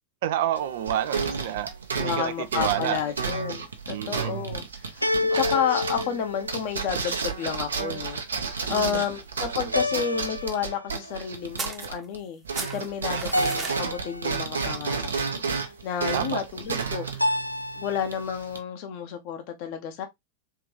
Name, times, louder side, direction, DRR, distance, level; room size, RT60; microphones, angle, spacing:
voice 1, 0.2-1.7 2.0-3.0 3.9-4.4 5.1-5.5 8.7-9.1 16.1-16.4, right 12 dB, 55° right, 0.4 m, -29 dB
sound 1, 0.6-1.3 5.0-7.0 9.7-11.1 13.3-14.5 17.2-18.2, left 2 dB, 90° left, 0.3 m, -29 dB
sound 2, 0.6-12.2 12.4-18.6, right 5 dB, 70° right, 0.8 m, -32 dB
voice 2, 2.0-17.4 17.8-20.1, left 8 dB, 45° left, 1.0 m, -31 dB
sound 3, 11.6-12.3 12.5-13.8, right 4 dB, 20° right, 0.9 m, -35 dB
3.7 x 3.4 x 2.8 m
figure-of-eight pair, 90°, 0 cm